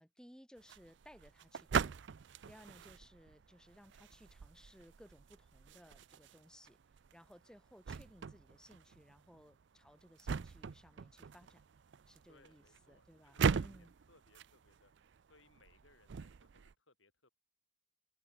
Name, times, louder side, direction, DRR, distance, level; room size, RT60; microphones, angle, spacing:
voice 1, 0.0-2.0 2.5-6.8 7.1-11.6 12.1-13.9, equal, 5° left, 8.0 m, -61 dB
sound 1, 0.6-16.7, right 6 dB, 65° right, 0.4 m, -41 dB
voice 2, 12.3-14.9 15.3-17.3, left 3 dB, 80° left, 7.4 m, -68 dB
open air
head